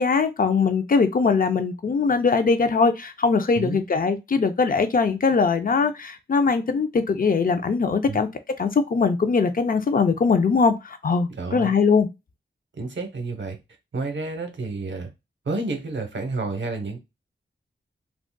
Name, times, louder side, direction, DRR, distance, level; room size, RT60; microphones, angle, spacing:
voice 1, 0.0-8.3 8.6-12.1, left 4 dB, 45° left, 0.4 m, -21 dB
voice 2, 3.6-3.9 8.1-8.2 11.3-11.7 12.8-13.6 13.9-15.1 15.5-17.0, right 3 dB, 70° right, 0.8 m, -30 dB
3.6 x 2.4 x 2.2 m
wide cardioid pair, 100°, 20 cm